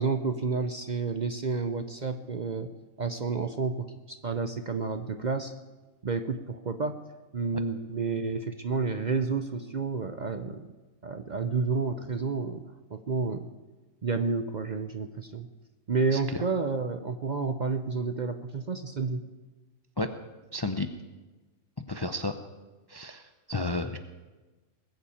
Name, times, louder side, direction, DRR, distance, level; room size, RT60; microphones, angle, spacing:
voice 1, 0.0-2.7 3.0-5.5 6.0-7.0 7.3-10.7 11.0-12.6 12.9-13.5 14.0-15.5 15.9-19.2, right 4 dB, 45° right, 8 dB, 0.7 m, -30 dB
voice 2, 16.1-16.4 20.0-20.1 20.5-20.9 21.9-22.3 22.9-24.0, left 2 dB, 25° left, 8 dB, 0.5 m, -32 dB
20.0 x 7.2 x 8.5 m, 1.2 s
omnidirectional pair, 1.4 m